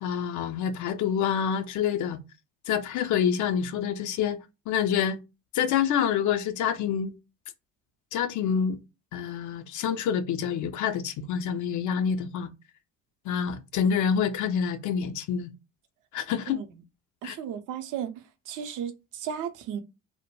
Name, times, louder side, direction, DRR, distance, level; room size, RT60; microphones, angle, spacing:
voice 1, 0.0-2.2 2.7-4.4 4.7-5.2 5.5-7.1 8.1-8.8 9.1-12.5 13.3-15.5 16.1-16.6 17.2-17.4, left 8 dB, 50° left, 0.5 m, -27 dB
voice 2, 16.5-16.8 17.2-18.1 18.5-19.8, right 8 dB, 55° right, 0.7 m, -34 dB
2.1 x 2.1 x 2.9 m
hypercardioid pair, 55°, 38 cm